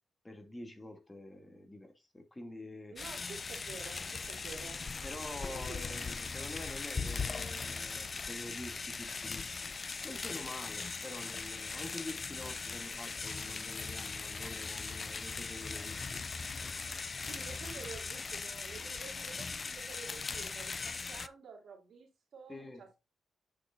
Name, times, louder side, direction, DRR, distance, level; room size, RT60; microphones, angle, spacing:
voice 1, 0.2-3.0 5.0-9.7 10.0-16.2 22.5-22.8, left 1 dB, 20° left, 2.4 m, -47 dB
voice 2, 2.9-4.9 5.5-6.0 17.3-23.0, right 5 dB, 65° right, 3.1 m, -50 dB
sound 1, 3.0-21.3, left 4 dB, 45° left, 0.5 m, -39 dB
7.5 x 7.1 x 2.6 m
supercardioid pair, 50°, 0 cm